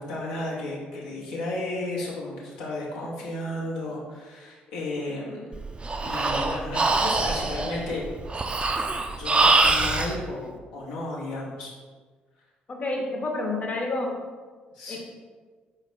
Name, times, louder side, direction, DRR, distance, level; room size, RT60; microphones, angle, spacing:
voice 1, 0.0-5.6 6.0-8.0 9.1-11.7 14.7-15.0, left 2 dB, 70° left, -5 dB, 0.7 m, -33 dB
Breathing, 5.5-10.1, right 3 dB, 25° right, 0.4 m, -24 dB
voice 2, 12.7-14.2 14.9-15.0, left 2 dB, 30° left, 0 dB, 0.8 m, -29 dB
4.2 x 2.8 x 3.2 m, 1.4 s
figure-of-eight pair, 45°, 4 cm